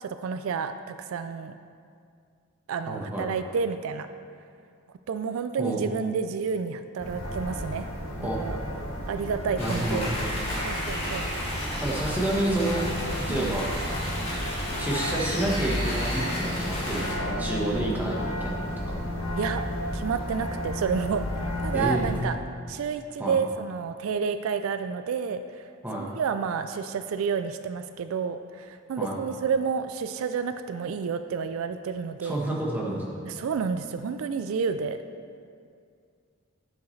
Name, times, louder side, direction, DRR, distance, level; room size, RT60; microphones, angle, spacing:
voice 1, 0.0-1.5 2.7-4.1 5.1-7.9 8.2-8.6 9.1-10.1 10.6-11.3 13.3-13.6 19.4-19.6 19.9-22.4 22.7-25.7 26.0-32.4 33.3-35.0, right 6 dB, 75° right, 9 dB, 0.3 m, -30 dB
voice 2, 2.9-3.3 5.6-5.8 8.2-8.4 9.6-10.3 11.8-12.8 13.2-13.7 14.8-19.0 21.7-22.0 23.2-23.4 25.8-26.0 29.0-29.2 32.2-33.0, right 1 dB, 10° right, -4 dB, 1.2 m, -29 dB
sound 1, 7.0-22.2, left 1 dB, 80° left, 1.6 m, -33 dB
sound 2, 9.6-17.2, left 1 dB, 30° left, 1.8 m, -33 dB
12.0 x 7.1 x 3.2 m, 2.3 s
head